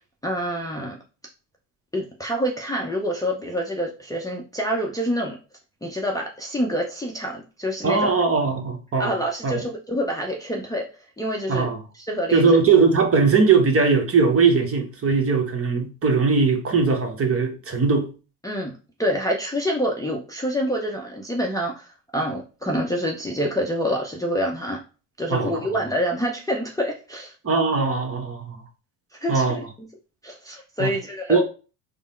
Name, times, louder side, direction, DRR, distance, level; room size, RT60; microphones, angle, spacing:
voice 1, 0.2-1.0 1.9-5.4 5.8-8.1 9.0-10.9 11.2-12.6 18.4-24.8 25.2-27.3 29.2-29.6 30.2-31.4, equal, 10° left, 0.6 m, -27 dB
voice 2, 7.8-9.2 9.4-9.6 11.5-11.8 12.3-18.1 25.3-25.6 27.4-28.6 29.3-29.6 30.8-30.9 31.3-31.4, right 4 dB, 30° right, 0.9 m, -20 dB
3.5 x 2.1 x 4.3 m
supercardioid pair, 90°, 44 cm